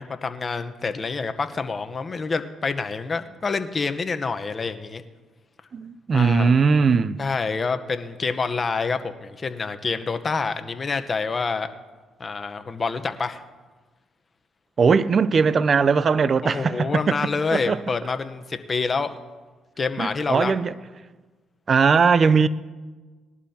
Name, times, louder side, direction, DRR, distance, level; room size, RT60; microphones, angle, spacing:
voice 1, 0.0-5.0 6.1-6.5 7.2-11.7 12.2-13.4 16.4-19.2 19.8-20.5, left 4 dB, 40° left, 1.0 m, -27 dB
voice 2, 5.7-7.2 14.8-17.2 17.5-17.8 20.0-20.7 21.7-22.5, right 5 dB, 45° right, 0.6 m, -19 dB
20.5 x 11.5 x 2.9 m
supercardioid pair, 70°, 0 cm